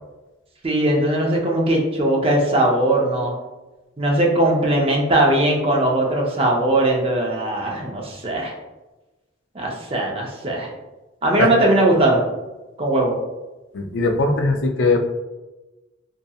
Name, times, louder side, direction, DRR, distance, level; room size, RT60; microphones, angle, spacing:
voice 1, 0.6-3.4 4.0-8.5 9.5-10.7 11.2-12.2 12.8-13.1, right 1 dB, 30° right, -1 dB, 0.5 m, -19 dB
voice 2, 13.7-15.1, left 3 dB, 70° left, 3 dB, 0.4 m, -20 dB
2.7 x 2.6 x 2.3 m, 1.1 s
head